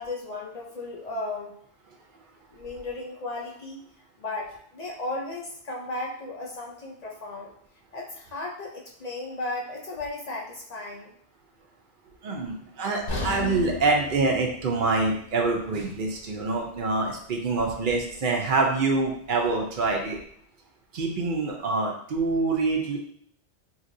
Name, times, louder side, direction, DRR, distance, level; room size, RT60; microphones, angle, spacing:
voice 1, 0.0-1.5 2.5-3.8 4.2-7.5 7.9-11.1, left 2 dB, 55° left, -2 dB, 0.4 m, -35 dB
voice 2, 12.2-20.2 20.9-23.0, right 3 dB, 55° right, 1 dB, 0.7 m, -26 dB
sound 1, 13.1-17.1 17.5-17.7 18.2-18.3, left 3 dB, 85° left, 1.1 m, -37 dB
3.1 x 2.8 x 2.6 m, 0.65 s
omnidirectional pair, 1.1 m